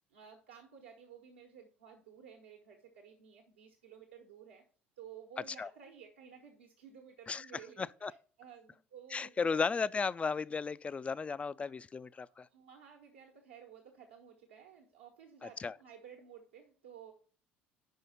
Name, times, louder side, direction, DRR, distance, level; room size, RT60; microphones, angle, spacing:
voice 1, 0.1-4.6 5.0-9.6 12.3-17.1, right 7 dB, 75° right, 1.2 m, -54 dB
voice 2, 7.8-8.1 9.1-12.5 15.6-15.7, left 5 dB, 20° left, 0.3 m, -35 dB
5.5 x 5.5 x 6.8 m
figure-of-eight pair, 60°, 6 cm